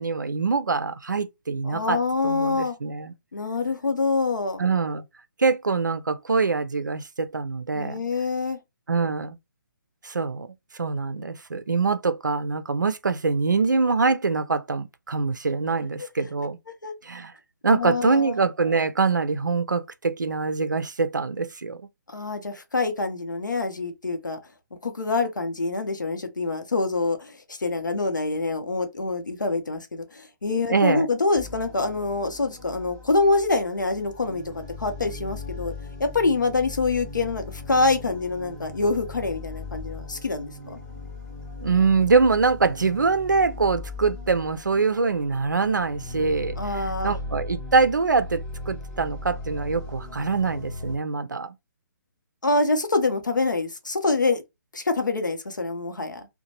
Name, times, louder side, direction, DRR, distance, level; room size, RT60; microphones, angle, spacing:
voice 1, 0.0-2.0 2.2-3.1 4.6-5.0 5.4-8.0 8.9-9.4 10.0-10.5 10.8-16.6 17.0-17.3 17.6-21.8 30.7-31.1 41.6-51.5, right 4 dB, 75° right, 0.4 m, -24 dB
voice 2, 1.6-2.7 3.3-4.6 7.7-8.6 16.0-16.3 16.8-16.9 17.7-18.3 22.1-24.4 24.8-35.7 36.0-40.8 46.6-47.1 52.4-54.4 54.7-56.3, left 3 dB, 70° left, 0.7 m, -25 dB
sound 1, 31.3-51.0, left 2 dB, 10° left, 0.7 m, -38 dB
2.8 x 2.2 x 2.8 m
figure-of-eight pair, 135°, 10 cm